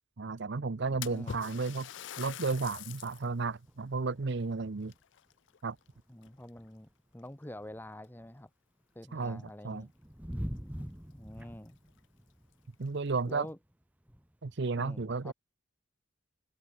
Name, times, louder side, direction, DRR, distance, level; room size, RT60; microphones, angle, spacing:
voice 1, 0.2-1.9 2.2-4.9 5.6-5.8 9.1-9.9 12.8-13.5 14.4-15.3, right 4 dB, 60° right, 0.7 m, -33 dB
Splash splatter, 1.0-3.3 3.8-3.9 4.8-5.9 6.2-6.7 7.5-7.6 8.0-8.1 10.3-10.4 10.7-10.8 11.4-11.5 11.9-12.0 12.7-13.3, left 9 dB, 60° left, 0.4 m, -45 dB
voice 2, 1.0-1.4 6.1-8.5 8.9-9.9 11.1-11.8 13.3-13.6 14.7-15.3, left 1 dB, 10° left, 1.1 m, -46 dB
sound 1, 3.7-5.0 5.3-5.4 5.7-8.5 9.0-14.6, equal, 10° right, 1.4 m, -45 dB
head